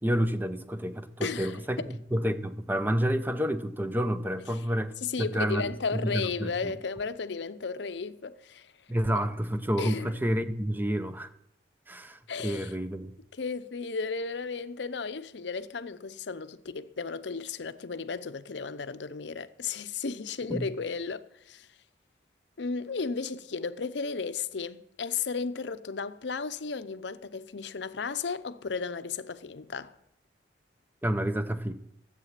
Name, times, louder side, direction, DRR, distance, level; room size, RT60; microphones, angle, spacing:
voice 1, 0.0-4.9 5.2-6.5 8.9-11.3 11.9-13.1 20.5-20.7 31.0-31.7, equal, 10° right, 0.7 m, -29 dB
voice 2, 1.2-1.9 5.0-8.7 9.2-9.3 9.8-10.2 12.3-12.7 13.4-21.7 22.6-29.9, left 5 dB, 75° left, 0.7 m, -34 dB
13.0 x 8.2 x 7.5 m
head